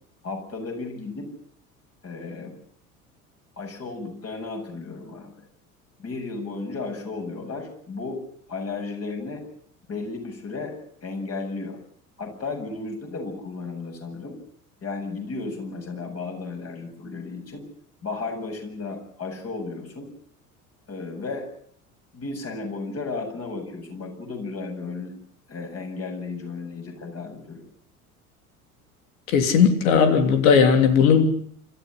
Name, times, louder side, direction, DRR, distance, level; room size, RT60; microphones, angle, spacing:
voice 1, 0.2-1.3 2.0-2.6 3.6-5.4 6.0-8.2 8.5-9.4 9.9-10.7 11.0-11.8 12.2-14.4 14.8-17.6 18.0-20.1 20.9-21.5 22.1-25.1 25.5-27.6, left 3 dB, 35° left, 3 dB, 7.6 m, -34 dB
voice 2, 29.3-31.2, left 6 dB, 65° left, 7 dB, 3.4 m, -17 dB
27.0 x 14.0 x 10.0 m, 0.65 s
figure-of-eight pair, 70°, 44 cm